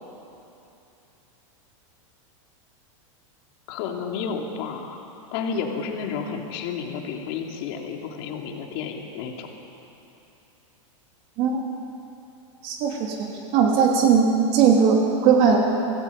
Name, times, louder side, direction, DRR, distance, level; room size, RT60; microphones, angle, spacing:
voice 1, 3.7-5.0 5.3-9.5, left 6 dB, 45° left, 2 dB, 3.0 m, -31 dB
voice 2, 12.6-13.2 13.5-15.6, right 6 dB, 40° right, 0 dB, 3.2 m, -19 dB
26.5 x 18.5 x 8.7 m, 2.9 s
supercardioid pair, 165°, 17 cm